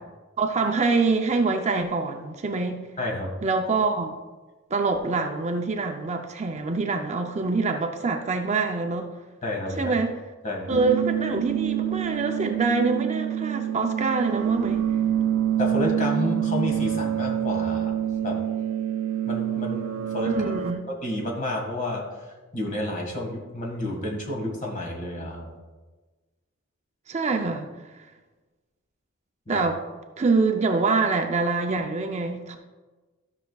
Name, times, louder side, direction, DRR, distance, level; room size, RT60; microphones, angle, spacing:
voice 1, 0.4-2.8 3.4-4.1 4.7-9.1 9.8-10.2 10.7-14.8 20.2-20.9 27.1-27.7 27.9-28.0 29.5-29.8 30.2-32.6, right 4 dB, 35° right, 4 dB, 0.5 m, -25 dB
voice 2, 3.0-3.3 9.4-10.0 10.4-10.8 15.6-17.9 18.2-18.4 19.3-20.3 21.0-22.0 22.5-25.5 29.5-29.6, left 1 dB, 40° left, 0 dB, 1.7 m, -30 dB
sound 1, 10.7-20.7, right 10 dB, 80° right, 0.6 m, -27 dB
12.5 x 6.3 x 2.3 m, 1.3 s
head